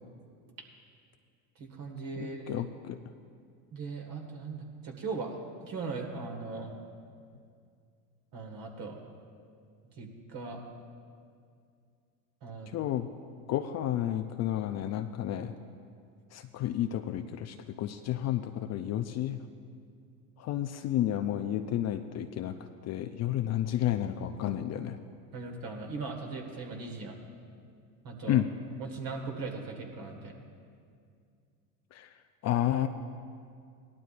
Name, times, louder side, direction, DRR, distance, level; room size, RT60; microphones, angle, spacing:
voice 1, 1.6-2.6 3.7-5.4 5.6-6.8 8.3-9.0 10.0-10.6 12.4-12.7 25.3-27.2 28.0-28.4 28.8-30.4, right 4 dB, 45° right, 2 dB, 1.8 m, -39 dB
voice 2, 2.2-3.0 12.7-13.1 13.5-15.5 16.3-19.4 20.4-22.6 22.8-25.0 28.3-28.5 31.9-32.1 32.4-32.9, left 12 dB, 35° left, 8 dB, 0.5 m, -31 dB
18.0 x 12.0 x 2.5 m, 2.3 s
hypercardioid pair, 90°, 46 cm